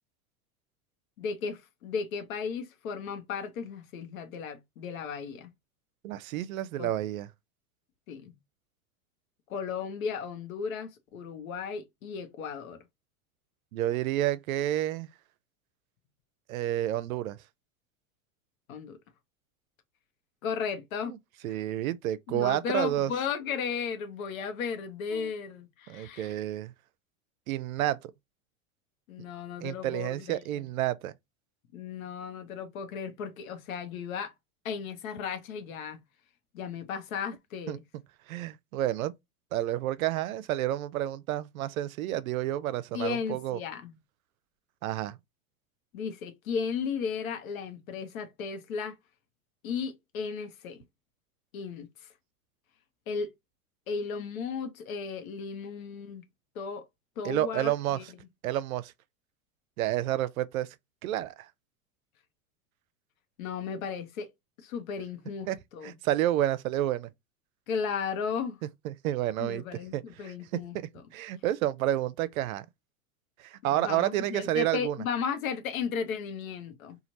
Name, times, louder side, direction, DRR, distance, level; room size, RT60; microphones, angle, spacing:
voice 1, 1.2-5.5 6.8-6.9 8.1-8.3 9.5-12.8 18.7-19.0 20.4-21.1 22.3-26.4 29.1-30.6 31.7-34.3 34.6-36.0 36.5-37.8 42.9-44.0 45.9-49.0 49.6-50.8 51.5-52.1 53.1-53.3 53.9-56.2 56.5-56.8 57.2-58.0 63.4-64.3 64.6-66.0 67.7-68.6 69.4-70.8 73.8-77.0, left 6 dB, 80° left, 0.9 m, -35 dB
voice 2, 6.0-7.3 13.7-15.1 16.5-17.4 21.0-21.2 21.4-23.1 25.1-25.3 25.9-26.7 27.5-28.1 29.6-31.1 37.7-37.8 38.3-39.1 39.5-43.6 44.8-45.2 57.2-58.0 58.4-58.9 59.8-60.7 61.0-61.5 65.5-65.6 65.8-67.1 68.8-69.6 69.9-70.4 70.7-72.7 73.4-75.0, right 13 dB, 85° right, 0.5 m, -30 dB
3.1 x 2.4 x 2.6 m
hypercardioid pair, 110°, 41 cm